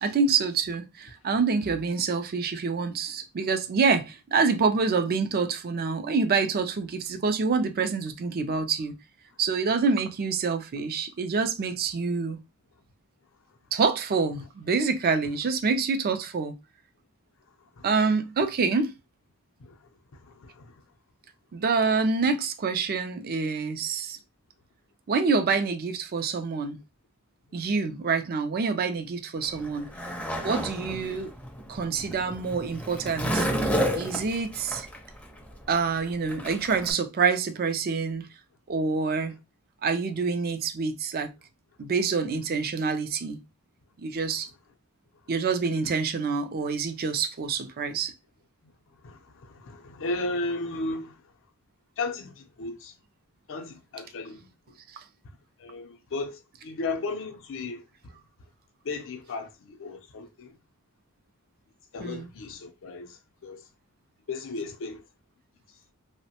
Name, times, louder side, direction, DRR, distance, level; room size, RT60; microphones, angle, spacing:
voice 1, 0.0-8.9 9.4-12.4 13.7-16.6 17.8-18.9 21.5-24.2 25.1-26.8 27.5-29.9 30.4-31.3 31.7-33.5 34.0-34.9 35.7-38.3 38.7-39.4 39.8-41.3 41.8-43.4 44.0-44.5 45.3-48.1 62.0-62.3, right 4 dB, 45° right, 0.4 m, -26 dB
voice 2, 20.2-20.7 30.9-31.3 49.0-51.2 52.0-52.9 53.5-54.5 55.6-57.8 58.8-60.5 61.9-63.6 64.3-65.0, left 3 dB, 60° left, 0.5 m, -35 dB
Skateboard, 29.4-36.9, equal, 5° left, 0.5 m, -31 dB
2.9 x 2.1 x 2.8 m
head